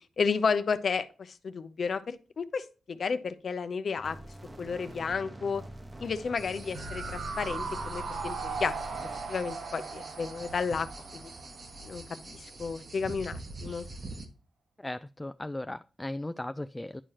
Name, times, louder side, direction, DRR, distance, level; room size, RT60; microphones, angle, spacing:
voice 1, 0.2-4.2 4.6-5.6 6.0-8.7 9.3-10.9 11.1-11.3 11.8-13.9, left 5 dB, 65° left, 11 dB, 0.6 m, -32 dB
sound 1, 3.9-9.2, right 1 dB, 30° right, 0.9 m, -46 dB
sound 2, 6.4-14.3, right 2 dB, 55° right, 1.2 m, -45 dB
sound 3, 6.7-12.0 12.3-12.4, right 4 dB, 80° right, 0.8 m, -38 dB
voice 2, 14.8-17.0, left 1 dB, 20° left, 13 dB, 0.3 m, -37 dB
10.0 x 4.8 x 2.9 m, 0.36 s
supercardioid pair, 45°, 0 cm